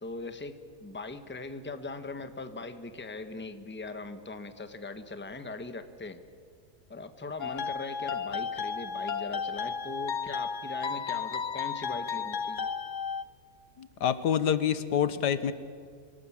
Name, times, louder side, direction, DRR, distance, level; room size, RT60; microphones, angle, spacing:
voice 1, 0.0-6.2 6.9-12.7, left 3 dB, 10° left, 9 dB, 1.1 m, -40 dB
sound 1, 7.4-13.2, left 6 dB, 55° left, 0.5 m, -33 dB
voice 2, 13.8-15.5, left 8 dB, 90° left, 13 dB, 1.7 m, -27 dB
26.0 x 18.0 x 8.6 m, 2.2 s
omnidirectional pair, 1.7 m